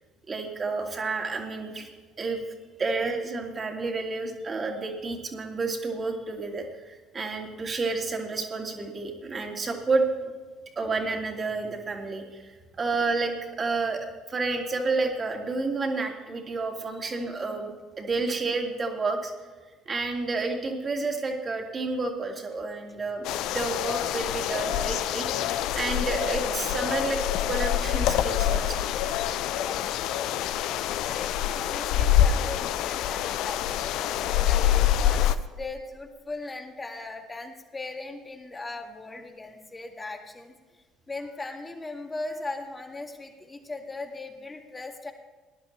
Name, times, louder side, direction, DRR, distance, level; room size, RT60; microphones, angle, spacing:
voice 1, 0.3-1.9 2.2-2.4 2.8-10.3 10.8-12.5 12.8-19.3 19.9-25.5 25.7-27.2 27.5-28.8, right 3 dB, 35° right, 1 dB, 2.6 m, -30 dB
sound 1, 23.2-35.3, left 11 dB, 65° left, 0.5 m, -26 dB
voice 2, 29.6-30.0 31.1-40.5 41.1-45.1, left 2 dB, 20° left, 3 dB, 2.1 m, -39 dB
19.0 x 11.0 x 3.3 m, 1.4 s
hypercardioid pair, 60°, 0 cm